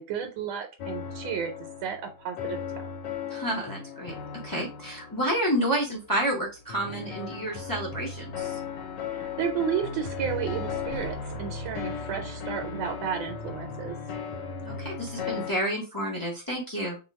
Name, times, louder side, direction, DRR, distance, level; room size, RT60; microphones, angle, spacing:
voice 1, 0.0-1.5 1.8-2.9 9.0-14.0, right 8 dB, 80° right, 4 dB, 1.4 m, -32 dB
sound 1, 0.8-15.5, left 6 dB, 70° left, 1.2 m, -37 dB
voice 2, 3.3-8.6 14.6-17.0, right 1 dB, 20° left, -3 dB, 0.5 m, -30 dB
sound 2, 6.4-6.8 7.4-14.2, left 1 dB, 50° left, 0.9 m, -44 dB
3.0 x 2.2 x 4.1 m, 0.31 s
omnidirectional pair, 2.1 m